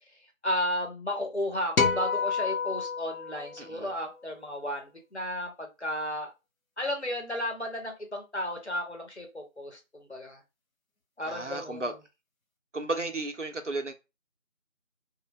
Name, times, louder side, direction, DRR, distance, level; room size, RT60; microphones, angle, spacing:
voice 1, 0.4-6.3 6.8-10.4 11.2-11.8, left 1 dB, 55° left, 1.0 m, -33 dB
sound 1, 1.8-4.2, left 5 dB, 90° left, 0.8 m, -29 dB
voice 2, 3.6-3.9 11.2-12.0 12.7-13.9, right 2 dB, 60° right, 0.6 m, -33 dB
3.1 x 2.2 x 3.1 m
figure-of-eight pair, 180°, 41 cm